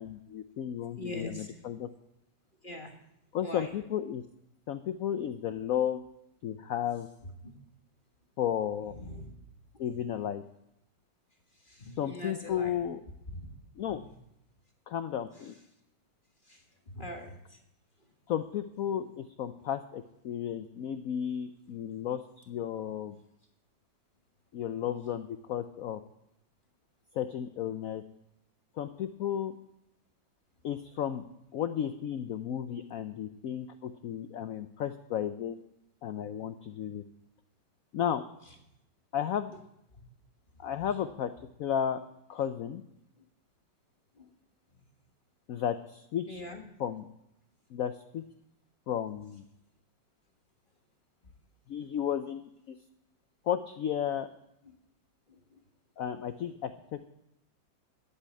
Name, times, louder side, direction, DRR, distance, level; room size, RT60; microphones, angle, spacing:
voice 1, 0.0-1.9 3.3-4.2 4.7-6.0 6.4-7.1 8.4-8.9 9.8-10.4 12.0-13.0 13.8-14.0 14.9-15.5 18.3-23.2 24.5-26.0 27.1-28.0 28.8-29.5 30.6-31.2 31.5-35.6 36.0-37.0 37.9-38.2 39.1-39.5 40.6-41.3 41.6-42.0 42.3-42.8 45.5-46.4 46.8-47.1 47.7-48.2 48.9-49.4 51.7-52.8 53.4-54.3 56.0-57.1, left 9 dB, 70° left, 10 dB, 0.8 m, -33 dB
voice 2, 1.0-1.6 2.6-2.9 3.4-3.7 7.4-7.5 8.9-9.3 11.6-12.8 13.3-13.5 16.5-17.6 40.8-40.9 43.2-43.3 44.2-44.3 44.7-44.8 46.3-46.6 55.3-55.6, left 1 dB, 30° left, 2 dB, 1.5 m, -43 dB
12.0 x 8.3 x 8.3 m, 0.81 s
omnidirectional pair, 2.0 m